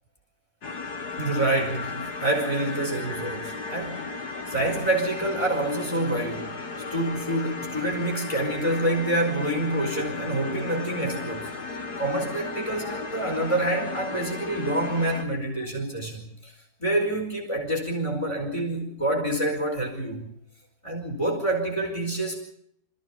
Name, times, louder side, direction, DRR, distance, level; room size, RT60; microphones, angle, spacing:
sound 1, 0.6-15.2, left 4 dB, 75° left, 2.5 m, -35 dB
voice 1, 1.2-4.0 4.5-6.5 6.9-11.5 12.0-16.5 16.8-20.3 20.8-22.5, right 1 dB, 20° left, 1 dB, 4.9 m, -27 dB
27.5 x 15.0 x 7.2 m, 0.72 s
omnidirectional pair, 1.7 m